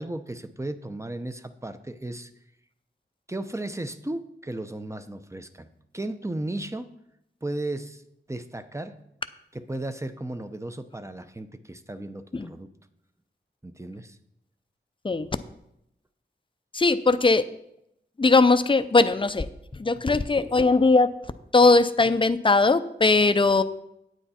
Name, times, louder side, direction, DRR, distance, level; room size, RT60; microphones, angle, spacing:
voice 1, 0.0-2.3 3.3-5.7 5.9-6.9 7.4-8.0 8.3-9.0 9.5-12.7 13.6-14.2, right 1 dB, 15° right, 9 dB, 0.7 m, -35 dB
voice 2, 16.7-17.4 18.2-19.5 19.7-21.1 21.5-23.6, left 3 dB, 25° left, 12 dB, 0.5 m, -20 dB
9.2 x 8.9 x 4.3 m, 0.80 s
wide cardioid pair, 75°, 19 cm